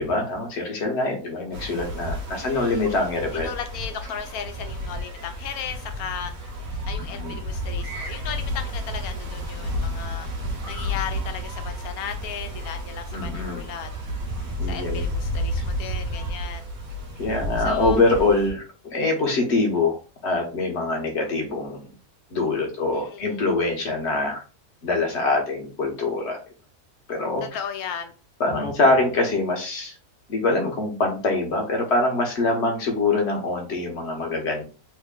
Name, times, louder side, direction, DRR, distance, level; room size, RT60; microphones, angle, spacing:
voice 1, 0.0-3.5 7.0-7.4 13.1-13.6 14.6-15.0 17.2-18.6 18.9-20.0 20.2-21.9 22.3-24.4 24.8-26.4 27.1-27.4 28.4-29.9 30.3-34.6, left 2 dB, 50° left, 1.1 m, -24 dB
sound 1, 1.5-18.5, equal, 65° right, 1.2 m, -31 dB
voice 2, 2.4-2.9 3.3-6.5 6.9-10.3 10.7-13.9 14.6-16.7 17.6-18.0 22.9-23.4 27.4-28.1, left 8 dB, 75° left, 1.1 m, -36 dB
3.2 x 2.1 x 3.6 m
omnidirectional pair, 1.6 m